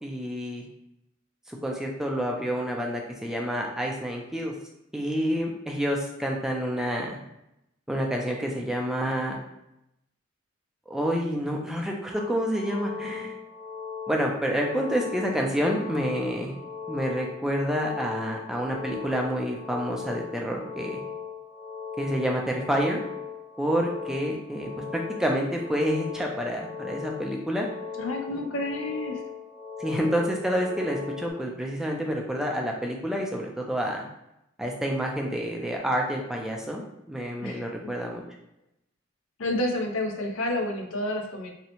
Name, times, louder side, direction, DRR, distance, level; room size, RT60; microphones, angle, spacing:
voice 1, 0.0-0.6 1.5-4.5 4.9-7.2 7.9-9.4 10.9-13.4 14.1-16.5 16.9-21.0 22.0-23.0 23.6-27.7 29.8-34.0 34.6-36.8 37.1-38.2, equal, 5° right, 0 dB, 0.3 m, -28 dB
sound 1, 12.1-31.3, left 6 dB, 60° left, 1.5 m, -38 dB
voice 2, 28.0-29.2 37.4-37.7 39.4-41.5, left 1 dB, 85° left, 3 dB, 0.5 m, -29 dB
2.6 x 2.0 x 2.8 m, 0.83 s
head